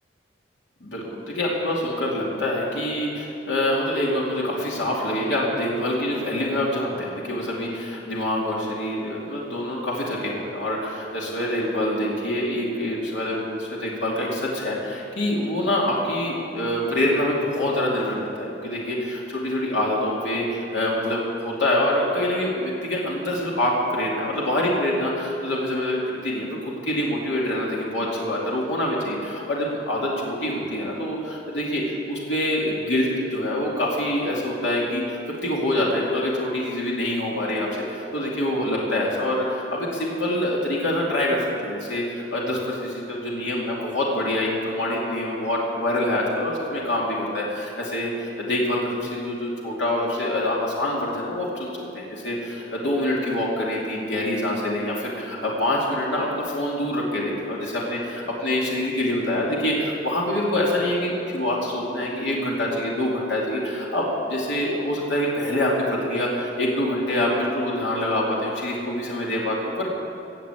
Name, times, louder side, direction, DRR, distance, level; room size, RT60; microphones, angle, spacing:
voice 1, 0.8-69.9, left 1 dB, 75° left, -4 dB, 2.6 m, -25 dB
17.0 x 6.9 x 8.2 m, 2.6 s
head